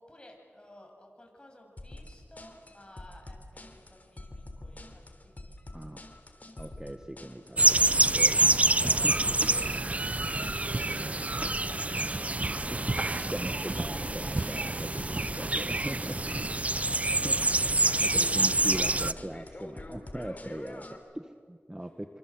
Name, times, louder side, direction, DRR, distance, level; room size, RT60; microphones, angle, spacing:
voice 1, 0.0-6.2 8.5-12.7 14.6-14.8 21.8-22.1, left 1 dB, 20° left, 1 dB, 7.9 m, -55 dB
sound 1, 1.8-21.0, left 1 dB, 40° left, 3.5 m, -46 dB
voice 2, 5.7-6.0 6.6-8.4 8.8-9.1 12.7-12.8 13.3-16.4 17.2-17.4 17.7-22.2, right 1 dB, 15° right, 7 dB, 1.5 m, -39 dB
sound 2, 7.6-19.1, right 2 dB, 30° right, 0.7 m, -27 dB
26.5 x 25.5 x 8.0 m, 2.1 s
cardioid pair, 50°, 4 cm